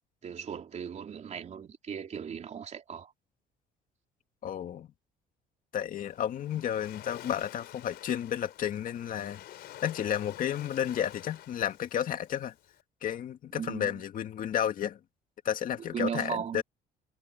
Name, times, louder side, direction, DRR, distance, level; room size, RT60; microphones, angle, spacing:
voice 1, 0.2-3.1 13.5-14.0 15.9-16.6, right 8 dB, 45° right, 3.6 m, -37 dB
voice 2, 4.4-4.9 5.7-9.4 9.8-12.5 13.0-15.0 15.4-16.6, left 9 dB, 55° left, 2.3 m, -32 dB
Waves surf, 6.0-12.8, left 13 dB, 70° left, 3.6 m, -49 dB
cardioid pair, 110°, 17 cm